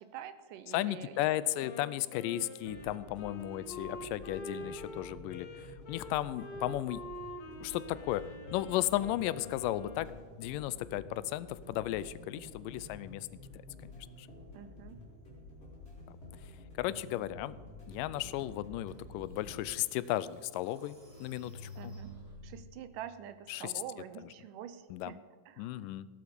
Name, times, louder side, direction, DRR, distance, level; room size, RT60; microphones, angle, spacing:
voice 1, 0.0-1.2 14.5-15.0 21.8-22.1 22.4-25.2 25.5-25.8, right 10 dB, 80° right, 12 dB, 2.3 m, -46 dB
voice 2, 0.7-7.0 7.6-8.3 8.5-10.1 10.4-13.3 13.5-13.6 14.0-14.3 16.8-17.6 17.9-21.9 23.5-23.7 24.9-25.1 25.6-26.1, left 14 dB, 90° left, 17 dB, 2.2 m, -35 dB
Wind instrument woodwind instrument, 1.6-10.2, left 1 dB, 55° left, 2.7 m, -46 dB
sound 1, 2.4-19.6, left 1 dB, 20° left, 4.2 m, -50 dB
sound 2, 18.9-19.0 19.6-22.7, left 1 dB, 15° right, 1.5 m, -50 dB
17.0 x 11.5 x 5.2 m, 1.5 s
omnidirectional pair, 3.8 m